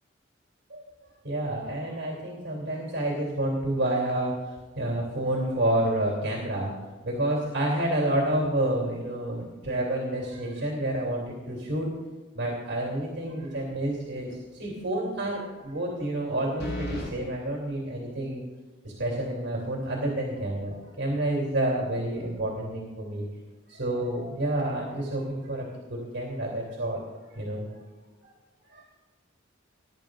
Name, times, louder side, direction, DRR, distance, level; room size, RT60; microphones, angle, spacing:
voice 1, 1.2-6.7 7.0-11.9 12.3-18.4 18.8-23.3 23.7-27.0 27.3-27.7 28.2-28.3 28.7-28.8, right 1 dB, 60° right, -2 dB, 3.0 m, -29 dB
sound 1, 13.5-13.9 14.3-14.4 16.6-17.1, left 1 dB, 60° left, 4.9 m, -34 dB
21.5 x 11.0 x 2.6 m, 1.2 s
head